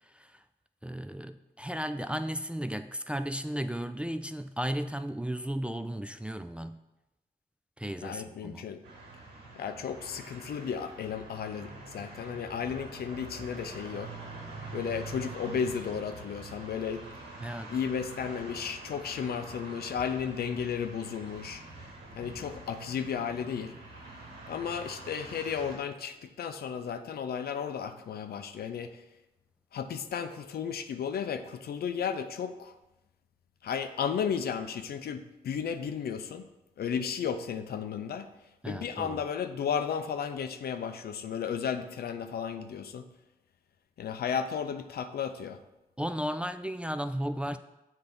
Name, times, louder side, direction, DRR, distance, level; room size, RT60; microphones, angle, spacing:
voice 1, 0.8-6.8 7.8-8.6 17.4-17.8 38.6-39.2 46.0-47.6, equal, 5° right, 9 dB, 0.3 m, -34 dB
voice 2, 8.0-8.8 9.6-14.1 14.7-17.1 17.7-21.6 22.2-23.8 24.5-29.0 29.7-32.7 33.6-36.5 36.8-38.3 38.7-43.1 44.0-45.6, left 7 dB, 65° left, 9 dB, 0.5 m, -34 dB
sound 1, 8.8-25.8, right 2 dB, 85° right, 1.1 m, -45 dB
7.7 x 2.8 x 5.2 m, 0.98 s
supercardioid pair, 45°, 17 cm